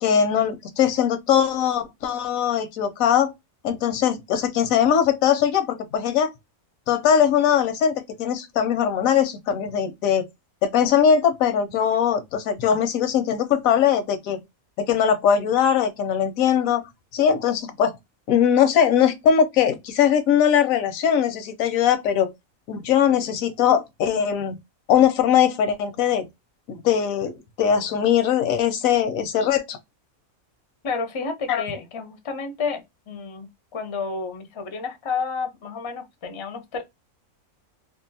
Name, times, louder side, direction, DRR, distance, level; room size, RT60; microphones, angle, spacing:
voice 1, 0.0-3.3 3.6-6.3 6.9-10.3 10.6-14.4 14.8-16.8 17.1-17.9 18.3-22.3 22.7-24.6 24.9-26.2 26.7-29.8 31.5-31.6, left 8 dB, 85° left, 1.0 m, -20 dB
voice 2, 30.8-36.8, left 5 dB, 45° left, 0.4 m, -31 dB
2.7 x 2.3 x 2.6 m
omnidirectional pair, 1.4 m